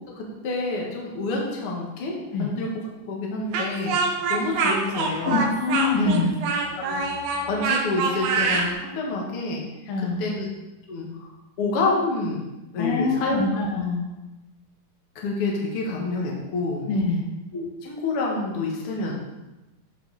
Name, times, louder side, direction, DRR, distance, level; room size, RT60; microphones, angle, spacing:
voice 1, 0.2-2.7 3.0-4.0 4.3-5.4 6.0-6.2 6.8-7.0 7.5-9.6 10.2-10.5 10.9-11.3 11.6-12.4 12.7-13.4 15.2-16.9 17.5-19.1, left 3 dB, 45° left, -2 dB, 2.2 m, -28 dB
Speech, 3.5-8.7, right 4 dB, 65° right, 2.1 m, -25 dB
voice 2, 5.3-6.4 9.9-10.4 12.8-14.0 16.9-17.2, left 3 dB, 75° left, 0 dB, 2.5 m, -24 dB
12.5 x 5.9 x 4.1 m, 1.0 s
omnidirectional pair, 4.2 m